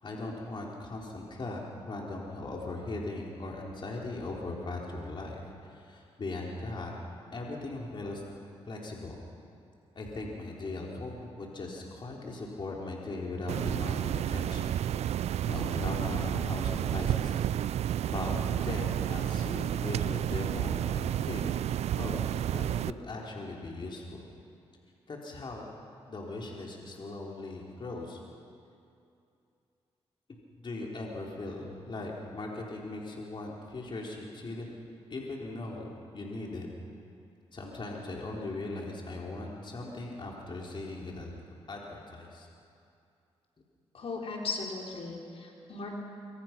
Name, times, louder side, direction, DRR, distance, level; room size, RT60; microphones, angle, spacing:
voice 1, 0.0-5.4 5.7-6.9 7.3-8.2 8.7-9.2 10.0-14.8 15.5-17.3 18.1-21.5 22.0-22.3 22.5-24.3 25.1-25.7 26.1-28.2 30.6-34.8 35.1-36.7 37.5-41.3 41.7-42.5, left 2 dB, 45° left, -2 dB, 3.8 m, -39 dB
sound 1, 13.5-22.9, right 11 dB, 75° right, 0.4 m, -31 dB
voice 2, 43.9-45.9, left 4 dB, 65° left, -1 dB, 4.0 m, -37 dB
25.0 x 24.5 x 6.0 m, 2.6 s
cardioid pair, 70°, 11 cm